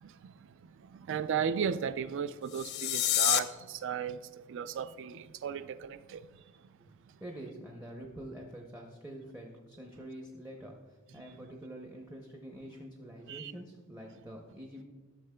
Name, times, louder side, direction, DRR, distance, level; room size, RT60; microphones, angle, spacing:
voice 1, 0.0-6.3 13.3-13.5, right 7 dB, 60° right, 0.3 m, -36 dB
sound 1, 2.4-3.4, left 13 dB, 55° left, 0.4 m, -28 dB
voice 2, 7.2-14.8, right 1 dB, 10° right, 0.6 m, -46 dB
11.5 x 6.5 x 2.2 m
head